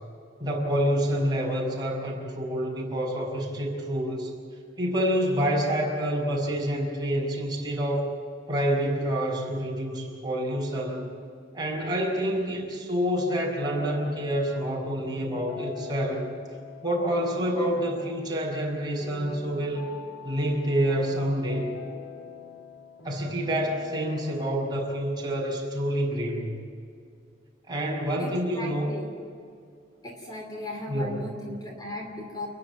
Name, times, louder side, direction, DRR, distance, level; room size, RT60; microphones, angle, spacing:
voice 1, 0.4-4.3 4.8-8.1 8.5-11.1 11.5-16.3 16.8-19.9 20.2-21.7 23.0-26.5 27.7-28.9 30.9-31.3, equal, 25° right, -2 dB, 5.7 m, -27 dB
sound 1, 13.6-25.2, left 5 dB, 80° left, 4.0 m, -43 dB
voice 2, 28.2-29.1 30.0-32.5, left 1 dB, 20° left, 1 dB, 2.8 m, -37 dB
29.5 x 11.0 x 9.4 m, 2.3 s
head